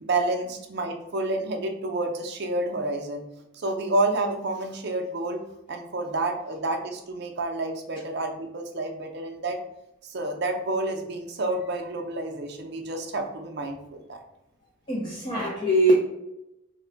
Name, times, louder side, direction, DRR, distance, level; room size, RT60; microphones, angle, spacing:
voice 1, 0.0-3.3 3.5-5.4 5.7-9.6 10.0-14.2, right 2 dB, 50° right, 3 dB, 0.5 m, -29 dB
voice 2, 14.9-15.9, right 1 dB, 20° left, -4 dB, 0.4 m, -22 dB
3.2 x 2.2 x 3.8 m, 0.88 s
head